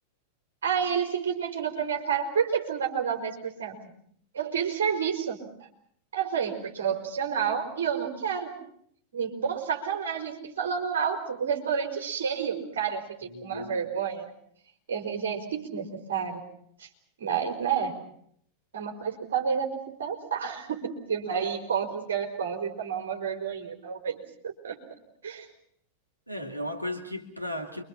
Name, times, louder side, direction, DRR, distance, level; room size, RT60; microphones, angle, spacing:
voice 1, 0.6-3.7 4.3-5.4 6.1-8.5 9.1-14.3 14.9-16.4 16.8-16.9 17.2-17.9 18.7-24.8 25.2-25.5, right 7 dB, 65° right, 3 dB, 4.6 m, -30 dB
voice 2, 13.3-13.7 26.3-27.8, left 1 dB, 90° right, 3 dB, 2.3 m, -35 dB
28.5 x 24.0 x 5.9 m, 0.66 s
figure-of-eight pair, 90°, 0 cm